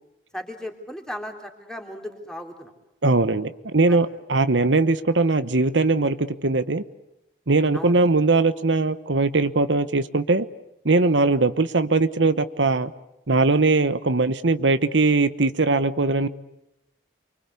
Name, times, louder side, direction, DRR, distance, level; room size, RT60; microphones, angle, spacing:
voice 1, 0.3-2.7 3.9-4.0 7.7-8.0, equal, 5° left, 3 dB, 3.7 m, -36 dB
voice 2, 3.0-6.8 7.5-10.4 10.8-12.9 13.3-16.3, right 3 dB, 85° right, 12 dB, 1.1 m, -20 dB
29.0 x 24.5 x 8.4 m, 0.85 s
head